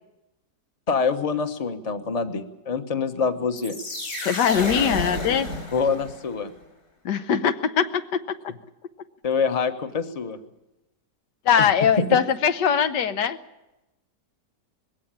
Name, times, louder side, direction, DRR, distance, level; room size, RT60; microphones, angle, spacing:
voice 1, 0.9-3.8 5.7-6.5 9.2-10.4 11.6-11.7 12.0-12.2, left 5 dB, 25° left, 8 dB, 1.0 m, -25 dB
sound 1, 3.6-6.4, left 2 dB, 50° left, 5.0 m, -31 dB
voice 2, 4.2-5.5 7.0-8.2 11.4-13.4, left 7 dB, 85° left, 10 dB, 1.6 m, -21 dB
20.5 x 17.0 x 8.9 m, 0.99 s
omnidirectional pair, 1.8 m